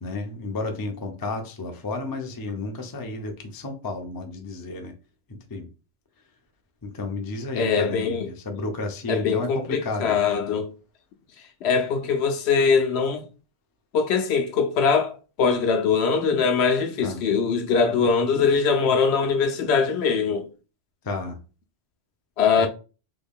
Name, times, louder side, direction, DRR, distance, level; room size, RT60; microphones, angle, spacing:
voice 1, 0.0-4.9 5.3-5.7 6.8-10.2 17.0-17.2 21.0-21.4 22.6-22.7, left 2 dB, 30° left, 0.4 m, -32 dB
voice 2, 7.6-8.3 9.1-10.7 11.6-13.3 13.9-20.5 22.4-22.7, left 5 dB, 70° left, 0.8 m, -22 dB
3.4 x 2.2 x 3.5 m
omnidirectional pair, 1.2 m